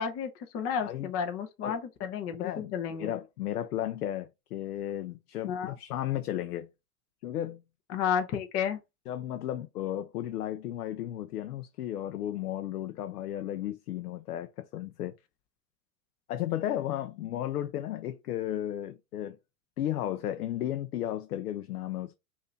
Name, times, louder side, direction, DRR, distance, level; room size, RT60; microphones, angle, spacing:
voice 1, 0.0-3.1 5.4-5.7 7.9-8.8, left 7 dB, 30° left, 0.9 m, -32 dB
voice 2, 0.8-1.1 1.6-1.8 2.4-2.7 3.0-6.7 7.2-7.6 9.1-15.1 16.3-19.4 19.8-22.2, left 12 dB, 90° left, 0.6 m, -34 dB
5.4 x 2.7 x 2.7 m
hypercardioid pair, 125°, 45 cm